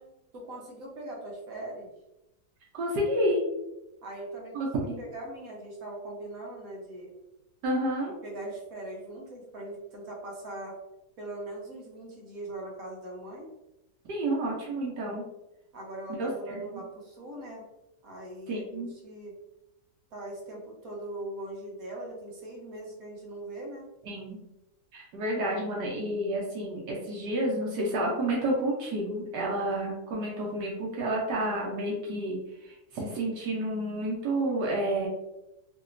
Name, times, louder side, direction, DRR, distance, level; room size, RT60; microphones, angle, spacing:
voice 1, 0.3-1.9 4.0-4.7 5.0-7.1 8.2-10.8 11.2-13.5 15.7-17.6 18.0-19.3 20.1-23.9, right 1 dB, 60° right, -1 dB, 1.2 m, -40 dB
voice 2, 2.7-3.4 4.5-4.9 7.6-8.1 14.0-15.2 16.2-16.6 18.5-18.9 24.0-24.4 24.9-35.1, right 1 dB, 80° right, -3 dB, 1.3 m, -30 dB
3.3 x 2.9 x 2.4 m, 0.92 s
omnidirectional pair, 1.8 m